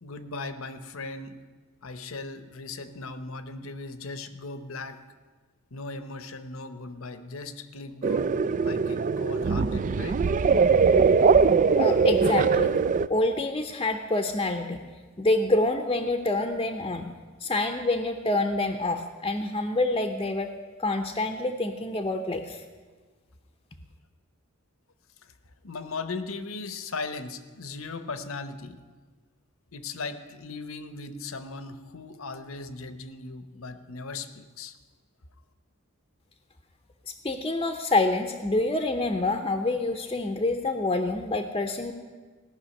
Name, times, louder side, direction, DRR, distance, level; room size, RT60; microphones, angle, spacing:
voice 1, 0.0-1.4 1.8-5.0 5.7-10.2 25.6-28.8 29.7-34.8, left 3 dB, 70° left, 11 dB, 0.9 m, -38 dB
sound 1, 8.0-13.1, right 5 dB, 35° right, 0.3 m, -21 dB
voice 2, 11.8-12.8 13.1-14.8 15.2-17.1 17.4-20.5 20.8-22.6 37.2-41.9, left 2 dB, 20° left, 4 dB, 0.7 m, -27 dB
17.5 x 6.2 x 9.6 m, 1.4 s
head